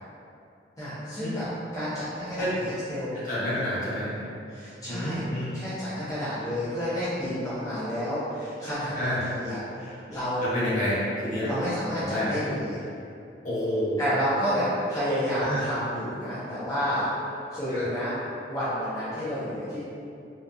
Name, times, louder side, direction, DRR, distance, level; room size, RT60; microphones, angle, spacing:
voice 1, 0.8-1.5 1.7-3.2 3.8-4.1 4.5-5.2 5.5-10.7 11.4-12.8 14.0-17.1 17.5-18.1 18.5-19.8, equal, 20° left, -13 dB, 0.5 m, -30 dB
voice 2, 3.2-4.1 4.9-5.5 9.0-9.2 10.4-11.5 12.0-12.4 13.4-14.2 15.4-15.6 17.7-17.9, equal, 45° left, -10 dB, 0.8 m, -29 dB
2.7 x 2.3 x 2.2 m, 2.6 s
head